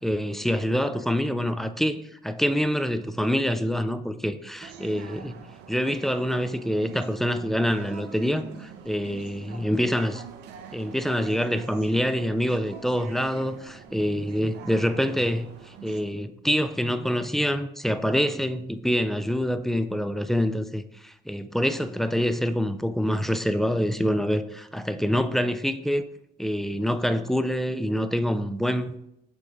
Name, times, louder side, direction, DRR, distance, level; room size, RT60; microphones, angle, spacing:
voice 1, 0.0-5.4 5.7-10.2 10.7-26.0 26.4-29.0, equal, ahead, 0.3 m, -26 dB
sound 1, 4.6-16.0, right 7 dB, 80° right, 0.6 m, -45 dB
6.5 x 3.7 x 3.9 m
cardioid pair, 110°, 17 cm